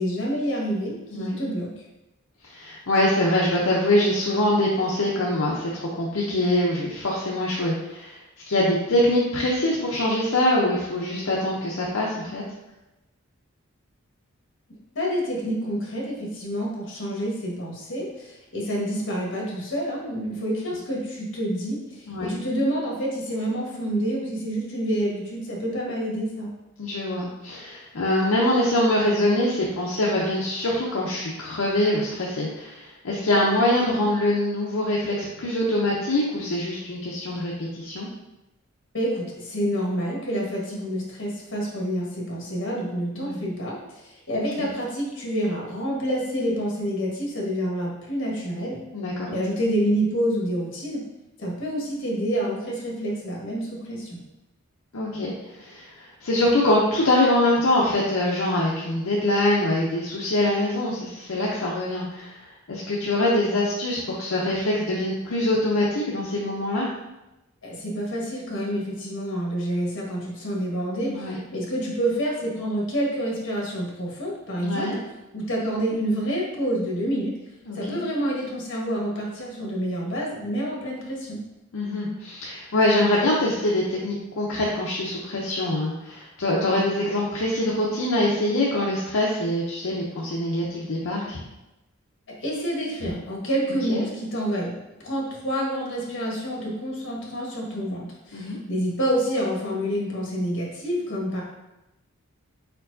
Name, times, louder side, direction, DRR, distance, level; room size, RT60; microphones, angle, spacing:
voice 1, 0.0-1.7 14.9-26.5 38.9-43.8 44.1-48.8 49.3-51.0 51.4-54.2 67.6-74.9 75.3-77.4 77.7-81.4 92.4-94.8 95.0-101.4, equal, 60° left, -3 dB, 1.4 m, -28 dB
voice 2, 2.5-8.2 8.5-12.4 22.1-22.4 26.8-38.1 43.1-43.4 48.9-49.3 54.9-55.9 56.2-66.9 71.0-71.4 74.5-75.0 77.7-78.0 81.7-91.4 93.9-94.0 98.3-98.6, left 1 dB, 75° left, -4 dB, 0.7 m, -24 dB
4.5 x 4.4 x 2.7 m, 0.98 s
head